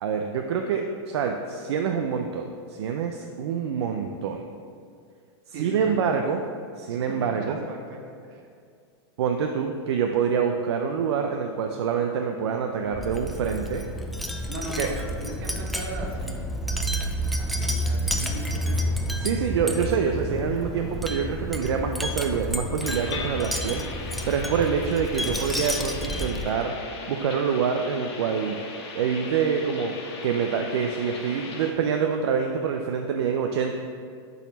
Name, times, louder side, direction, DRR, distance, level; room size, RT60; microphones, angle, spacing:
voice 1, 0.0-4.4 5.6-6.4 6.8-7.6 9.2-13.9 14.8-14.9 19.2-23.9 24.3-26.7 27.1-28.6 28.9-29.9 30.2-33.7, right 6 dB, 75° right, 4 dB, 0.5 m, -26 dB
voice 2, 5.5-6.1 7.2-8.4 14.5-14.9 15.2-16.5 17.3-19.0, right 2 dB, 50° right, -1 dB, 1.3 m, -38 dB
Wind chime, 12.9-26.6, equal, ahead, 0.3 m, -30 dB
sound 1, 22.8-31.7, left 3 dB, 70° left, 1.3 m, -38 dB
6.7 x 4.1 x 6.1 m, 2.2 s
supercardioid pair, 155°, 14 cm